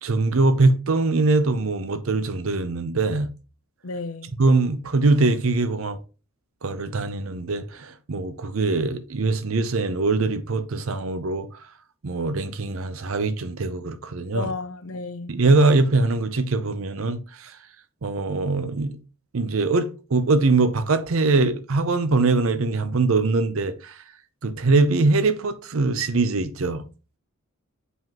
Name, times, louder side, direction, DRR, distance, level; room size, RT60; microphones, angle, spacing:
voice 1, 0.0-3.3 4.4-6.0 6.6-11.5 12.0-14.5 15.3-17.6 18.0-19.0 19.3-24.0 24.4-26.8, right 3 dB, 70° right, 0.7 m, -22 dB
voice 2, 3.8-4.3 14.3-15.4, left 3 dB, 80° left, 0.7 m, -32 dB
7.5 x 5.5 x 3.0 m
head